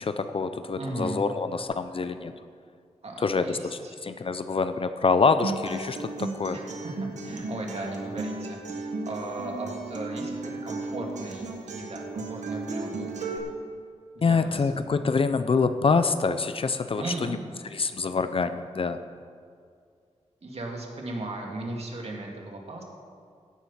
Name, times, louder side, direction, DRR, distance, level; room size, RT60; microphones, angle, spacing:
voice 1, 0.0-2.3 3.2-6.6 14.2-17.4 17.7-19.0, left 4 dB, 50° left, 10 dB, 0.6 m, -26 dB
voice 2, 0.8-1.2 3.0-4.0 6.5-13.1 14.2-14.7 16.9-17.4 20.4-22.8, right 2 dB, 60° right, 0 dB, 2.2 m, -37 dB
Acoustic guitar, 5.4-13.4, right 3 dB, 75° right, 1.5 m, -35 dB
16.0 x 7.6 x 5.7 m, 2.2 s
wide cardioid pair, 100°, 12 cm